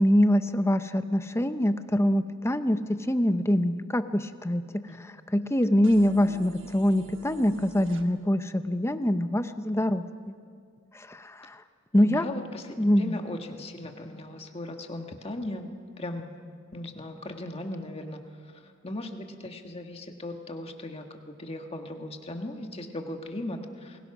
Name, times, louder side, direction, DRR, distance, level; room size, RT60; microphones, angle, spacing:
voice 1, 0.0-4.7 5.3-10.3 10.9-11.6 11.9-12.2 12.8-13.2, equal, 10° left, 10 dB, 0.7 m, -24 dB
sound 1, 5.8-8.0, right 2 dB, 60° right, 1.4 m, -48 dB
voice 2, 11.9-15.7 16.0-16.4 16.7-24.0, left 1 dB, 30° left, 4 dB, 1.7 m, -38 dB
28.5 x 21.5 x 6.1 m, 2.1 s
head